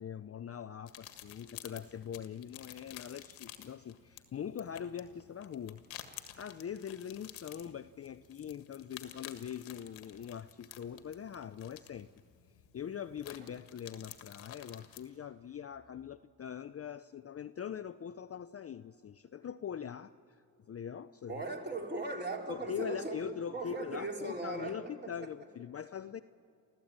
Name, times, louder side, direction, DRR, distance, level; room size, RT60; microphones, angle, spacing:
voice 1, 0.0-5.8 6.4-12.1 12.7-21.3 22.5-26.2, left 8 dB, 35° left, 13 dB, 0.6 m, -42 dB
sound 1, 0.9-15.0, left 12 dB, 90° left, 1.7 m, -52 dB
voice 2, 21.3-25.1, right 2 dB, 25° right, 1 dB, 4.3 m, -39 dB
29.0 x 14.5 x 8.8 m, 2.7 s
supercardioid pair, 70°, 44 cm